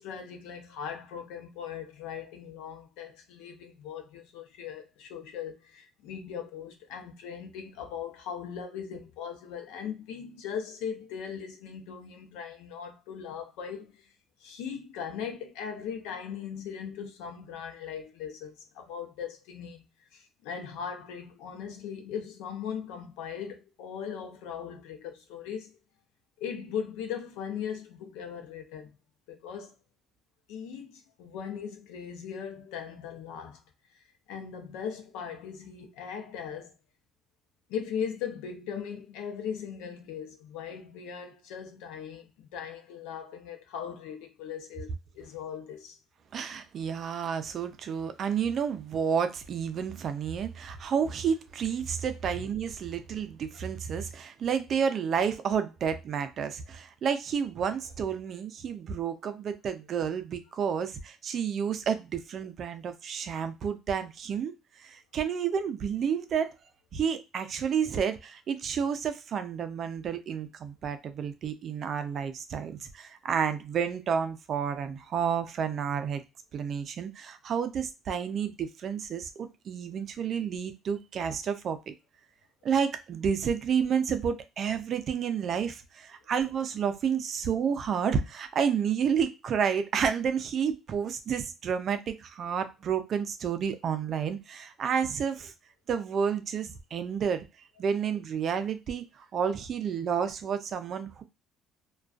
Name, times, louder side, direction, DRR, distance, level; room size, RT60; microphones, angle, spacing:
voice 1, 0.0-14.1 14.4-19.9 20.1-25.7 26.4-29.0 29.3-29.8 30.5-33.6 34.3-36.7 37.7-46.0 52.4-52.5, left 7 dB, 90° left, 0.6 m, -39 dB
voice 2, 46.3-64.5 64.8-66.5 66.9-76.2 76.5-81.9 82.6-95.5 95.9-97.5 97.8-101.2, right 7 dB, 50° right, 0.4 m, -30 dB
2.4 x 2.2 x 2.3 m
cardioid pair, 115°, 0 cm